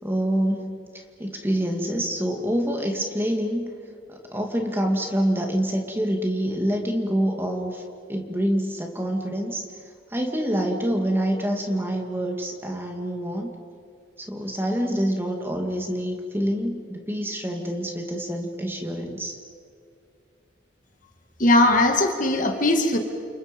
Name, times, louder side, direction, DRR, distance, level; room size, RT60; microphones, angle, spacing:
voice 1, 0.0-0.8 1.2-3.7 4.1-7.8 8.1-9.6 10.1-13.5 14.2-19.4, equal, 10° right, 2 dB, 2.3 m, -26 dB
voice 2, 21.4-23.0, left 2 dB, 40° left, 4 dB, 2.2 m, -19 dB
29.5 x 28.5 x 5.4 m, 2.3 s
head